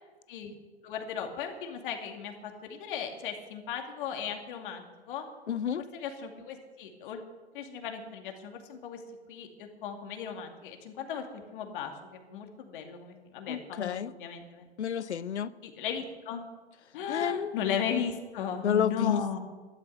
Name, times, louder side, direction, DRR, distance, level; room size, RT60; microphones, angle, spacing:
voice 1, 0.8-5.2 5.9-7.2 7.5-9.0 9.3-11.3 11.5-14.7 15.6-16.4 16.9-19.4, left 7 dB, 50° left, 4 dB, 2.5 m, -36 dB
voice 2, 5.5-5.8 13.5-14.1 14.8-15.5 17.1-17.5 18.6-19.4, left 8 dB, 80° left, 17 dB, 0.8 m, -30 dB
13.0 x 12.0 x 6.9 m, 1.3 s
hypercardioid pair, 125°, 33 cm